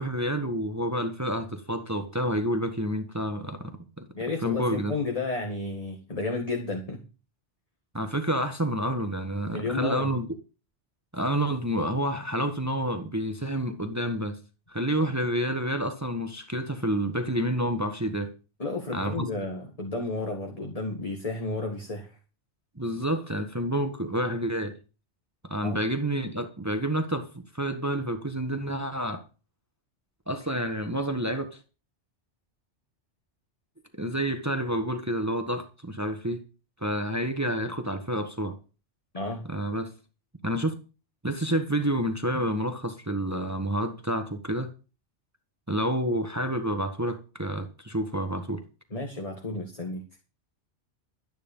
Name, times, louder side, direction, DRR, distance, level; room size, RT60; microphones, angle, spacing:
voice 1, 0.0-3.7 4.0-4.1 4.4-4.9 7.9-10.3 11.1-14.4 14.7-18.3 18.9-19.3 22.8-24.8 25.5-27.3 27.5-29.2 30.3-31.6 34.0-36.4 36.8-38.6 39.5-39.9 40.4-40.8 41.2-44.7 45.7-48.6, right 1 dB, 15° right, 1.3 m, -29 dB
voice 2, 4.2-7.0 9.5-10.2 18.6-22.2 25.6-25.8 39.1-39.4 48.9-50.0, left 3 dB, 30° left, 1.9 m, -32 dB
12.5 x 9.5 x 5.5 m
omnidirectional pair, 1.2 m